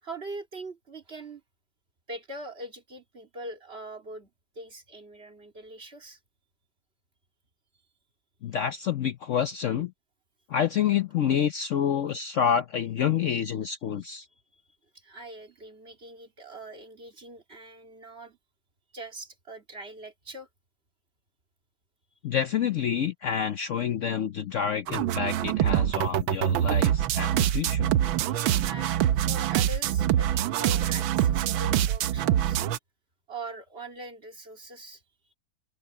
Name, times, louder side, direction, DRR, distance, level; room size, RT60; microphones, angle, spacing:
voice 1, 0.0-1.4 2.1-4.3 4.5-6.2 14.3-14.6 14.9-18.4 18.9-20.5 28.2-32.6 33.3-35.0, right 2 dB, 30° right, 2.8 m, -42 dB
voice 2, 8.4-9.9 10.5-14.3 22.2-27.9, left 8 dB, 85° left, 0.6 m, -28 dB
sound 1, 24.9-32.8, right 11 dB, 80° right, 1.5 m, -25 dB
omnidirectional pair, 2.2 m